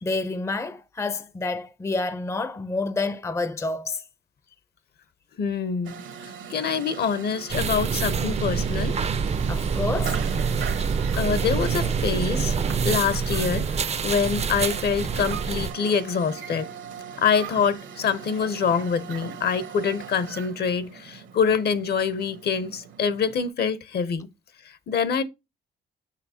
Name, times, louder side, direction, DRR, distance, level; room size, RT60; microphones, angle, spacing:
voice 1, 0.0-4.0 9.5-10.2, left 3 dB, 15° left, 0.5 m, -28 dB
voice 2, 5.4-6.0 6.5-9.0 11.2-12.5 12.8-16.7 17.2-24.3 24.6-25.2, left 6 dB, 55° left, 0.8 m, -25 dB
sound 1, 5.8-23.5, right 7 dB, 75° right, 1.2 m, -40 dB
sound 2, 7.5-15.7, right 6 dB, 35° right, 0.5 m, -26 dB
6.3 x 5.8 x 2.8 m
cardioid pair, 90°, 20 cm